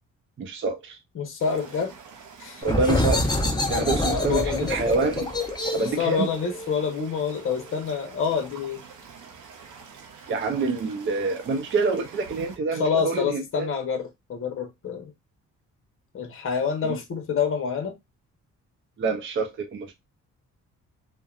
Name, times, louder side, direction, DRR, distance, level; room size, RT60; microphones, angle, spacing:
voice 1, 0.4-1.0 2.6-3.4 3.7-5.3 5.7-6.3 10.3-13.7 16.8-17.0 19.0-19.9, right 4 dB, 40° right, 0.6 m, -26 dB
voice 2, 1.1-1.9 2.4-2.7 3.8-4.7 5.7-8.8 12.7-15.1 16.1-18.0, left 6 dB, 45° left, 0.8 m, -27 dB
sound 1, 1.4-12.6, right 5 dB, 85° right, 0.8 m, -46 dB
sound 2, 2.6-8.0, left 1 dB, 15° left, 0.6 m, -27 dB
2.7 x 2.1 x 2.4 m
cardioid pair, 90°, 30 cm